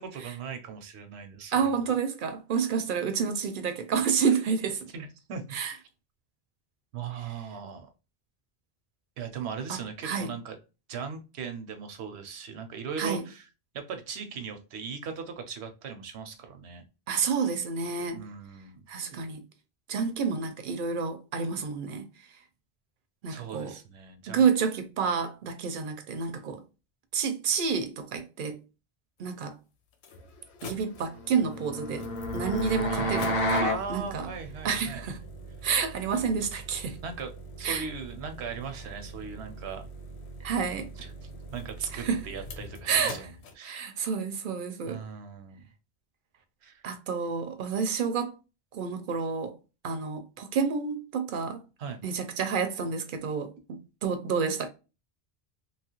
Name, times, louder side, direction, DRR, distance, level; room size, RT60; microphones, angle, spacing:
voice 1, 0.0-1.7 4.9-5.4 6.9-7.9 9.2-10.6 10.9-13.4 13.7-16.8 18.1-18.9 23.3-24.5 32.9-35.0 37.0-37.3 37.6-39.9 41.0-43.9 44.9-45.7 46.6-46.8 51.8-52.0, right 6 dB, 80° right, 0.9 m, -38 dB
voice 2, 1.5-4.9 5.5-5.7 9.7-10.3 13.0-13.2 17.1-18.2 18.9-19.4 19.9-22.1 23.2-23.7 24.3-26.6 27.1-28.6 29.2-29.6 30.6-32.1 32.3-33.6 33.9-34.3 34.6-35.2 35.6-37.0 37.6-37.8 40.4-40.9 41.9-42.2 42.9-43.2 43.6-45.0 46.8-48.3 48.7-49.6 49.8-51.6 52.0-54.7, right 6 dB, 60° right, 0.6 m, -29 dB
sound 1, 29.3-29.4 29.9-43.5, right 1 dB, 85° left, 0.9 m, -44 dB
sound 2, 31.2-33.8, left 1 dB, 45° left, 0.4 m, -30 dB
2.9 x 2.3 x 2.9 m
omnidirectional pair, 1.1 m